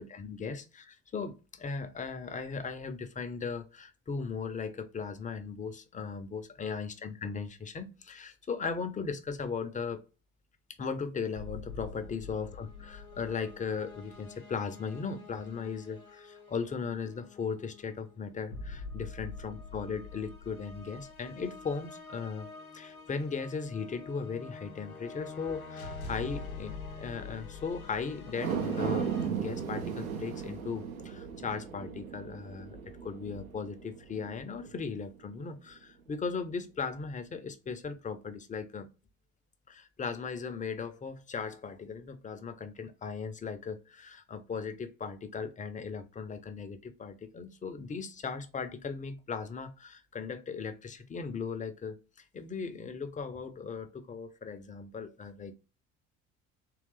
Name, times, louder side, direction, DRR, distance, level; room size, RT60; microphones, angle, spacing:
voice 1, 0.0-10.0 10.8-22.5 22.7-38.9 39.7-52.0 52.3-55.5, left 5 dB, 20° left, 0.7 m, -37 dB
sound 1, 11.4-29.3, left 4 dB, 90° left, 0.6 m, -45 dB
sound 2, 28.3-34.8 35.2-35.3, right 6 dB, 80° right, 0.8 m, -36 dB
3.8 x 3.2 x 3.2 m
figure-of-eight pair, 55°, 42 cm